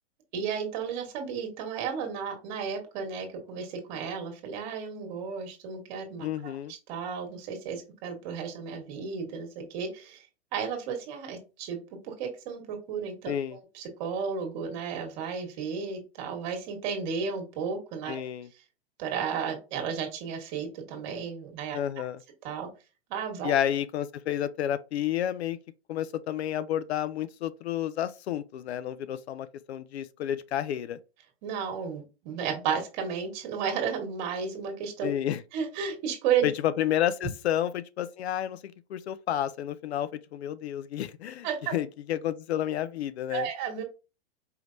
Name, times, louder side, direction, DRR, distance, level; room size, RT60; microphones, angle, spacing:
voice 1, 0.3-10.3 10.5-11.8 12.0-18.2 19.0-22.0 22.4-22.7 23.1-23.5 31.4-35.1 35.5-36.5 41.4-41.7 43.3-43.8, right 6 dB, 40° right, 1.6 m, -33 dB
voice 2, 6.2-6.7 13.3-13.6 18.1-18.5 21.7-22.2 23.4-25.6 25.9-31.0 35.0-35.4 36.4-41.5 41.7-43.5, left 11 dB, 70° left, 0.5 m, -30 dB
4.7 x 3.2 x 2.6 m
hypercardioid pair, 135°, 33 cm